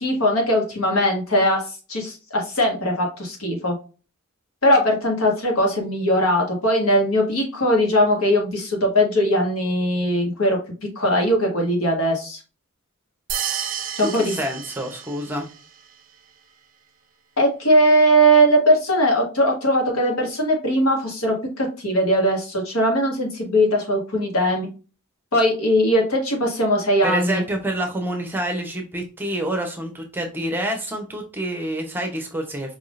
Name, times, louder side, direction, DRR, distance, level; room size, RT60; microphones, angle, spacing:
voice 1, 0.0-1.6 1.9-3.8 4.6-10.6 10.9-12.4 14.0-14.3 17.4-24.7 25.3-27.4, equal, 85° left, 1 dB, 1.6 m, -20 dB
sound 1, 13.3-15.6, right 8 dB, 40° right, 0.5 m, -30 dB
voice 2, 14.0-15.5 27.0-32.8, right 1 dB, 10° right, 3 dB, 0.8 m, -27 dB
4.7 x 3.6 x 2.5 m, 0.33 s
head